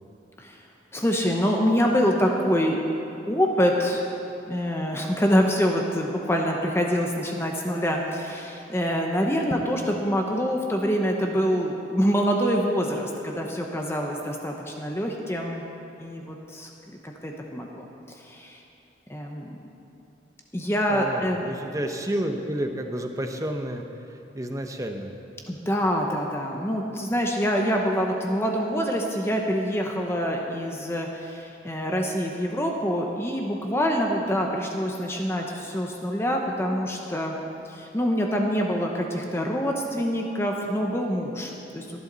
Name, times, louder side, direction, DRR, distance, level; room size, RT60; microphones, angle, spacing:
voice 1, 0.9-2.8 3.3-4.0 4.5-15.6 16.0-16.7 17.0-17.9 18.2-18.6 19.1-19.6 20.5-21.4 25.5-37.3 37.7-41.8, equal, 15° left, 1 dB, 0.9 m, -25 dB
voice 2, 20.9-23.8 24.1-25.1, right 1 dB, 20° right, 4 dB, 0.8 m, -30 dB
18.5 x 11.5 x 4.0 m, 2.8 s
head